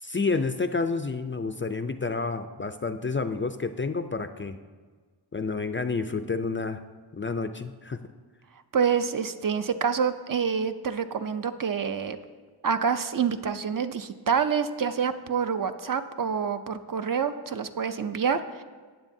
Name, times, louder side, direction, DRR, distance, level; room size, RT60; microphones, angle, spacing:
voice 1, 0.0-4.6 5.3-6.8 7.1-8.0, left 4 dB, 30° left, 9 dB, 0.4 m, -29 dB
voice 2, 8.7-12.2 12.6-18.6, right 6 dB, 50° right, 9 dB, 0.5 m, -27 dB
14.5 x 9.0 x 2.7 m, 1.5 s
wide cardioid pair, 110°, 44 cm